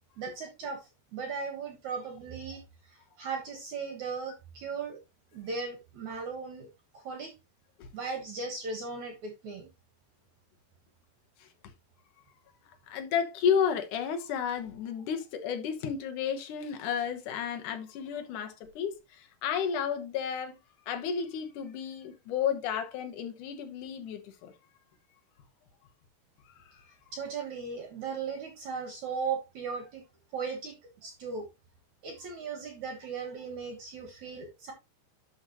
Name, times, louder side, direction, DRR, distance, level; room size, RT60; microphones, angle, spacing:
voice 1, 0.2-5.0 5.3-6.7 6.9-7.3 7.9-9.7 27.1-30.0 30.3-31.5 32.0-34.7, right 5 dB, 60° right, 2.1 m, -37 dB
voice 2, 12.9-20.6 20.9-24.5 26.5-26.8, left 7 dB, 65° left, 2.1 m, -32 dB
11.5 x 5.1 x 3.0 m
omnidirectional pair, 5.0 m